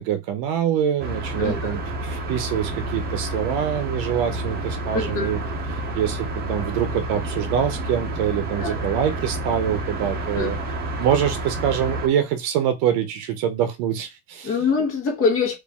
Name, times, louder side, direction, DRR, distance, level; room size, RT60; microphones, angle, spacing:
voice 1, 0.0-5.4 5.9-10.6 11.0-14.5, right 9 dB, 65° right, 0.7 m, -25 dB
sound 1, 1.0-12.1, right 1 dB, 25° right, 0.7 m, -29 dB
voice 2, 1.4-1.8 4.9-5.3 8.6-8.9 10.3-10.5 14.4-15.5, left 5 dB, 35° left, 1.3 m, -24 dB
4.2 x 2.6 x 3.5 m
cardioid pair, 175°, 38 cm